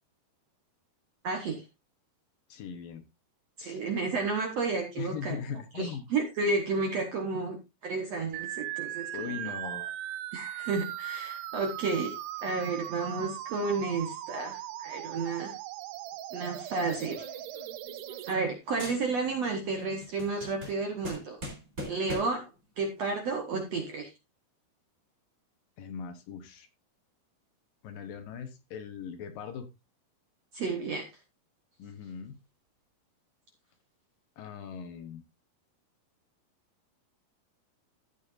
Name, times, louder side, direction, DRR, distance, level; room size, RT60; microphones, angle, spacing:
voice 1, 1.2-1.6 3.6-5.3 5.7-7.6 7.8-9.4 10.3-12.1 12.4-15.5 16.3-17.3 18.3-21.4 21.9-22.5 22.8-24.1 30.5-31.0, right 4 dB, 60° right, 3 dB, 1.8 m, -31 dB
voice 2, 2.5-3.0 3.6-3.8 5.0-6.0 9.1-9.9 25.8-26.7 27.8-29.7 31.8-32.4 34.4-35.2, left 7 dB, 70° left, 8 dB, 2.6 m, -39 dB
sound 1, 8.3-18.3, right 13 dB, 85° right, 2.7 m, -39 dB
sound 2, 17.2-18.5 18.8-19.5 19.8-22.5, equal, 20° right, 4.1 m, -42 dB
14.0 x 8.5 x 2.6 m, 0.23 s
omnidirectional pair, 4.6 m